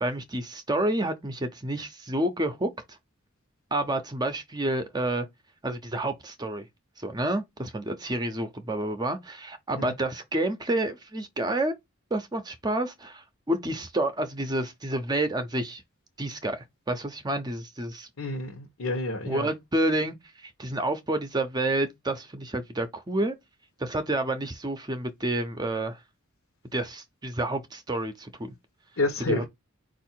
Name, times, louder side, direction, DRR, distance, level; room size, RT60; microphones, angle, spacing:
voice 1, 0.0-3.0 3.7-5.3 5.6-6.7 7.0-11.7 12.1-15.8 16.2-18.1 19.3-23.3 23.8-26.0 26.7-28.5 29.3-29.4, right 1 dB, 20° right, 0.6 m, -29 dB
voice 2, 18.2-19.5 29.0-29.4, left 2 dB, 75° left, 1.1 m, -29 dB
4.7 x 2.5 x 4.4 m
head